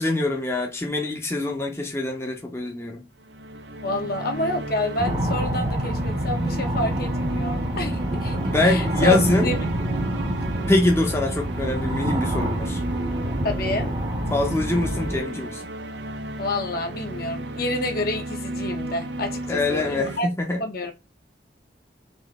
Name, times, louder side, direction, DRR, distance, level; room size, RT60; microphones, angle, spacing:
voice 1, 0.0-3.0 8.5-9.5 10.7-12.8 14.3-15.6 19.5-20.6, left 2 dB, 15° left, 0.7 m, -24 dB
sound 1, 3.2-20.2, right 2 dB, 90° right, 0.7 m, -34 dB
voice 2, 3.8-8.4 8.6-9.2 9.4-9.6 13.4-13.9 16.4-20.3 20.6-20.9, left 1 dB, 60° left, 1.0 m, -28 dB
sound 2, 5.0-15.2, right 1 dB, 30° right, 0.8 m, -27 dB
4.1 x 2.7 x 3.5 m
head